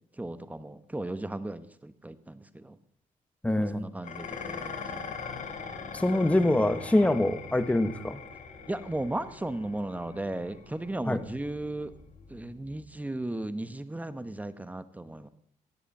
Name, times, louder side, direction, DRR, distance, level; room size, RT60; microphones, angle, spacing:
voice 1, 0.2-2.8 3.6-4.8 8.7-11.9 12.3-15.3, right 1 dB, 10° right, 12 dB, 1.0 m, -36 dB
voice 2, 3.4-3.9 5.9-8.2 11.1-11.2, left 1 dB, 10° left, 11 dB, 1.2 m, -24 dB
Dishes pots and pans, 4.0-12.8, left 5 dB, 60° left, 2.6 m, -42 dB
18.0 x 8.1 x 7.1 m, 0.69 s
cardioid pair, 105°, 14 cm